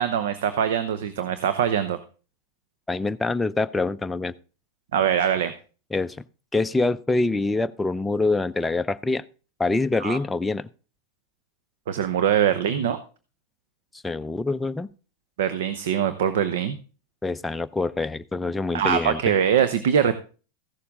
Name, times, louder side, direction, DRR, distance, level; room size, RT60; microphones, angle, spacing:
voice 1, 0.0-2.0 4.9-5.5 10.0-10.2 11.9-13.0 15.4-16.8 18.7-20.2, right 8 dB, 75° right, 11 dB, 0.8 m, -23 dB
voice 2, 2.9-4.3 5.9-6.2 6.5-9.2 9.6-10.7 14.0-14.9 17.2-19.3, left 3 dB, 10° left, 10 dB, 0.4 m, -25 dB
15.0 x 6.9 x 3.6 m, 0.35 s
hypercardioid pair, 110°, 0 cm